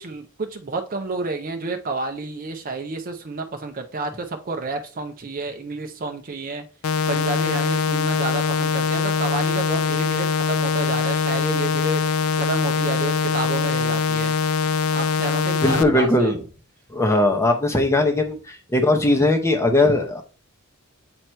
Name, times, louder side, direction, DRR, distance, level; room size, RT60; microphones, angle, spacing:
voice 1, 0.0-6.6 7.1-12.0 12.3-14.3 14.9-16.3, right 3 dB, 40° right, 5 dB, 0.6 m, -30 dB
sound 1, 6.8-15.8, left 5 dB, 80° left, 0.4 m, -22 dB
voice 2, 15.6-16.4 16.9-20.2, left 2 dB, 15° left, 4 dB, 0.9 m, -19 dB
7.8 x 2.9 x 4.5 m, 0.37 s
head